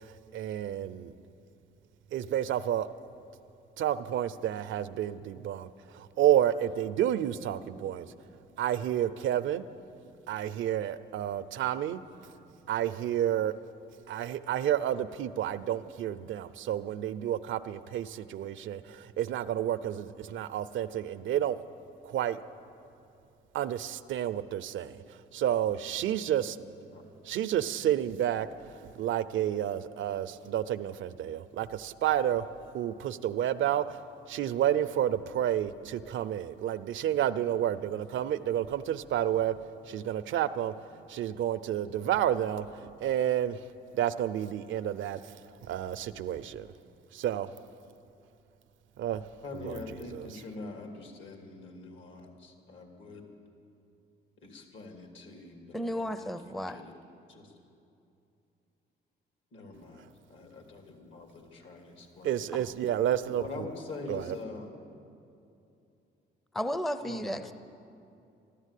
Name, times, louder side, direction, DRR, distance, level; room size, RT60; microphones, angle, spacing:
voice 1, 0.3-1.1 2.1-2.9 3.8-8.1 8.6-9.6 10.3-12.0 12.7-13.5 14.1-21.6 22.0-22.4 23.5-25.0 25.3-26.6 27.3-28.5 29.0-32.4 32.7-34.0 34.3-39.5 39.9-40.7 41.1-43.6 43.9-45.2 45.6-46.6 47.1-47.5 49.0-49.2 49.6-49.7 62.2-63.4 64.1-64.2, right 11 dB, 75° right, 14 dB, 0.6 m, -30 dB
voice 2, 49.4-53.3 54.4-56.9 57.3-57.6 59.5-62.5 63.4-64.9 67.0-67.5, left 3 dB, 75° left, 3 dB, 2.8 m, -44 dB
voice 3, 55.7-56.8 66.5-67.5, equal, ahead, 11 dB, 0.5 m, -33 dB
13.0 x 12.5 x 8.3 m, 2.7 s
cardioid pair, 90°, 20 cm